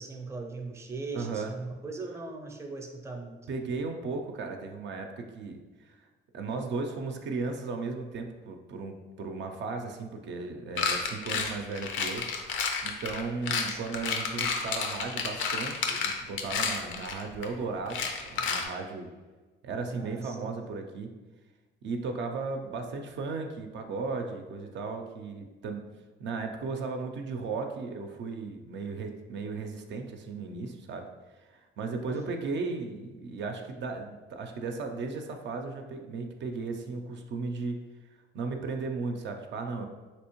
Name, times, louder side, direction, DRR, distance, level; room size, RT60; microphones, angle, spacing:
voice 1, 0.0-3.4 13.4-13.9 19.9-20.5 32.1-32.4, right 3 dB, 15° right, 2 dB, 0.5 m, -39 dB
voice 2, 1.1-1.5 3.5-6.1 6.3-12.3 12.8-19.1 19.6-21.1 21.8-25.9 26.2-31.1 31.4-37.9 38.3-39.8, right 4 dB, 65° right, 4 dB, 0.4 m, -36 dB
sound 1, 10.8-17.5 17.9-18.6, left 5 dB, 80° left, 0.5 m, -31 dB
3.4 x 2.9 x 2.9 m, 1.2 s
cardioid pair, 90°, 20 cm